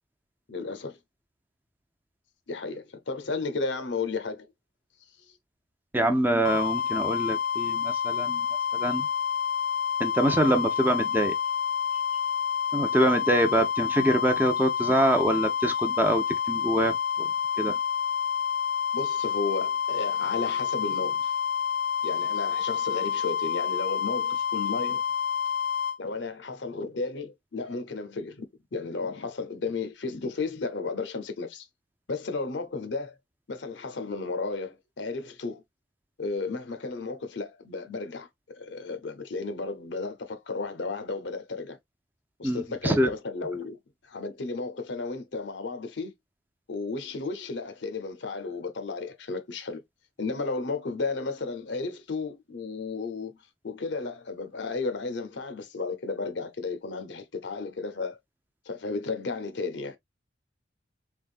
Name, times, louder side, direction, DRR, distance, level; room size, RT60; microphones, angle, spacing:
voice 1, 0.5-1.0 2.5-4.5 18.9-21.3 22.0-25.0 26.0-28.5 28.7-31.7 32.1-33.2 33.5-35.6 36.2-38.3 38.6-41.8 42.4-43.8 44.0-46.1 46.7-49.8 50.2-53.4 53.6-58.2 58.7-60.0, left 3 dB, 75° left, 0.7 m, -33 dB
voice 2, 5.9-8.5 8.7-9.1 10.0-11.3 12.7-17.3 17.6-17.8 42.4-43.1, right 1 dB, 10° right, 0.4 m, -25 dB
sound 1, 6.4-26.0, left 8 dB, 50° left, 0.3 m, -28 dB
3.5 x 3.5 x 2.4 m
head